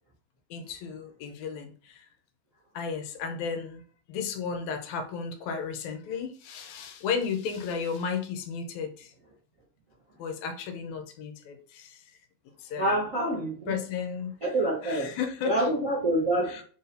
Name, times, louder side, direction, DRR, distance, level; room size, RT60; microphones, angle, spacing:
voice 1, 0.5-2.1 2.7-3.8 4.1-9.1 10.2-12.0 12.6-13.0 13.7-14.4 14.8-15.7 16.5-16.6, left 6 dB, 80° left, 6 dB, 2.0 m, -34 dB
voice 2, 12.8-13.7 14.4-15.1 15.4-16.6, right 1 dB, 55° right, -5 dB, 0.8 m, -26 dB
4.8 x 2.7 x 4.0 m, 0.43 s
omnidirectional pair, 3.3 m